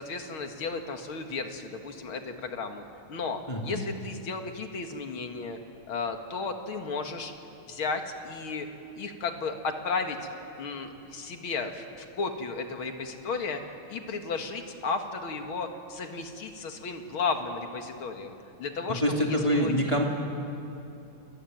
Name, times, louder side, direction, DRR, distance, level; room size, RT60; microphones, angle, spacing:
voice 1, 0.0-5.6 5.9-7.3 7.7-8.7 9.0-10.2 10.6-11.8 12.1-13.6 13.9-18.3 18.6-19.7, left 4 dB, 80° left, 5 dB, 2.7 m, -34 dB
voice 2, 3.5-3.8 18.9-20.0, equal, 15° left, -1 dB, 2.8 m, -26 dB
29.0 x 22.0 x 9.4 m, 2.8 s
omnidirectional pair, 2.3 m